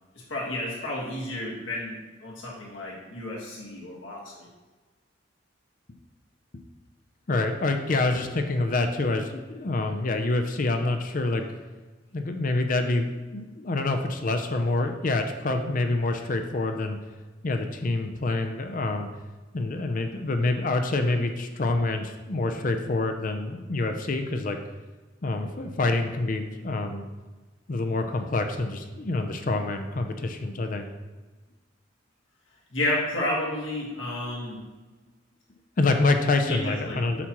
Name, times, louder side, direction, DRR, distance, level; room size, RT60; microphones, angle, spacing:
voice 1, 0.1-4.5 32.7-34.6 36.5-37.0, left 1 dB, 85° left, -3 dB, 1.5 m, -31 dB
voice 2, 7.3-11.5 12.1-17.0 17.4-19.1 19.5-24.6 25.2-27.0 27.7-30.9 35.8-37.3, left 2 dB, 45° left, 6 dB, 0.5 m, -26 dB
8.2 x 5.9 x 3.0 m, 1.3 s
head